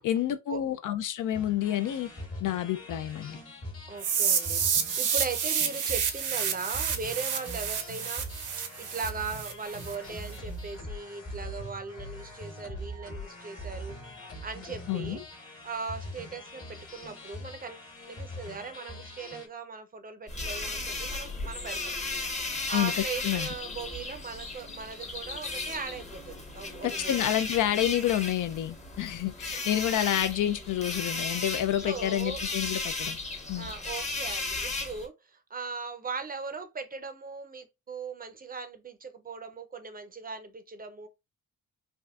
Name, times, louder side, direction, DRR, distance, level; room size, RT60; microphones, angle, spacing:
voice 1, 0.0-2.1 2.4-3.4 14.9-15.2 22.7-23.5 26.8-33.2 33.5-33.7, left 11 dB, 75° left, 0.5 m, -29 dB
sound 1, 1.3-19.5, equal, 45° left, 1.2 m, -42 dB
voice 2, 3.9-15.2 15.6-21.9 22.7-27.2 29.3-29.6 31.8-32.4 33.6-41.1, right 4 dB, 30° right, 0.5 m, -39 dB
sound 2, 4.0-9.9, right 7 dB, 75° right, 0.7 m, -29 dB
sound 3, 20.3-35.1, left 3 dB, 20° left, 0.7 m, -35 dB
3.5 x 2.5 x 2.3 m
cardioid pair, 125°, 31 cm